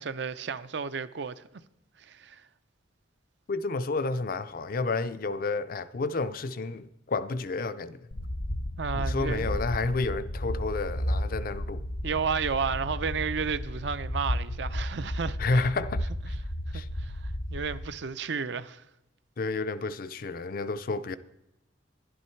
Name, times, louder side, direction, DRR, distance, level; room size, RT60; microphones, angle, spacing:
voice 1, 0.0-1.4 2.0-2.4 8.8-9.6 12.0-15.4 16.7-18.8, right 5 dB, 65° right, 0.5 m, -32 dB
voice 2, 3.5-8.0 8.9-11.8 15.4-16.0 16.7-16.9 19.4-21.2, left 3 dB, 50° left, 0.5 m, -30 dB
sound 1, 8.1-17.9, equal, 80° left, 1.0 m, -33 dB
11.5 x 11.0 x 4.5 m
head